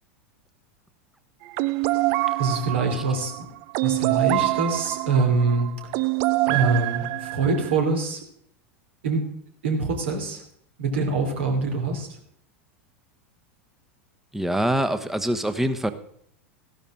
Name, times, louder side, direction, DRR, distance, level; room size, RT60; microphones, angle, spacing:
sound 1, 1.5-7.8, right 19 dB, 50° right, 0.5 m, -25 dB
voice 1, 2.4-3.5 3.8-5.7 6.4-8.2 9.0-9.2 9.6-10.4 10.8-12.1, right 4 dB, 65° right, 4 dB, 2.9 m, -24 dB
voice 2, 14.3-15.9, right 1 dB, 5° right, 10 dB, 1.0 m, -24 dB
14.5 x 12.0 x 3.8 m, 0.66 s
figure-of-eight pair, 85°, 7 cm